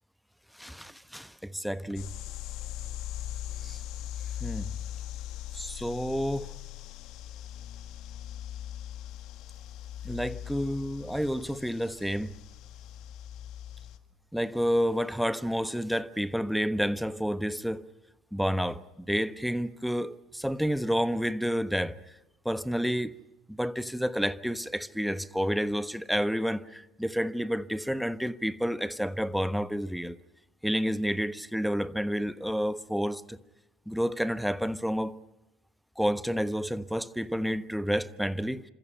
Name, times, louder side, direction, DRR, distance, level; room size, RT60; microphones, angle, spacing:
voice 1, 0.6-2.1 3.6-3.8 4.4-4.7 5.5-6.5 10.0-12.3 14.3-17.9 18.3-22.0 22.4-23.2 23.5-30.2 30.6-33.4 33.9-35.1 36.0-38.6, equal, ahead, 1.2 m, -30 dB
sound 1, 1.9-14.0, left 11 dB, 55° left, 1.7 m, -40 dB
28.0 x 26.5 x 5.7 m
figure-of-eight pair, 60°, 0 cm